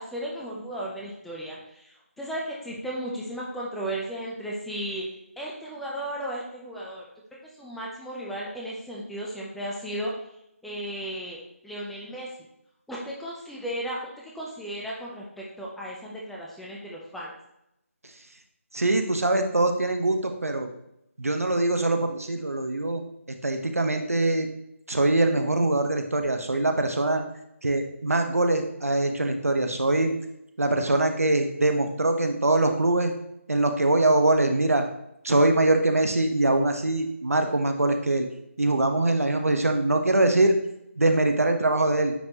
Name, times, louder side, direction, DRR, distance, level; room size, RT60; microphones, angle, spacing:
voice 1, 0.0-5.1 5.4-7.0 7.6-10.1 10.6-12.3 12.9-14.0 14.2-17.3, right 1 dB, ahead, -4 dB, 0.5 m, -35 dB
voice 2, 18.7-20.7 21.2-23.0 23.4-24.5 24.9-27.2 27.6-30.1 30.6-33.1 33.5-34.8 35.2-38.3 38.6-40.6 41.0-42.1, right 2 dB, 85° right, 5 dB, 1.0 m, -23 dB
9.2 x 4.2 x 2.9 m, 0.81 s
figure-of-eight pair, 155°, 8 cm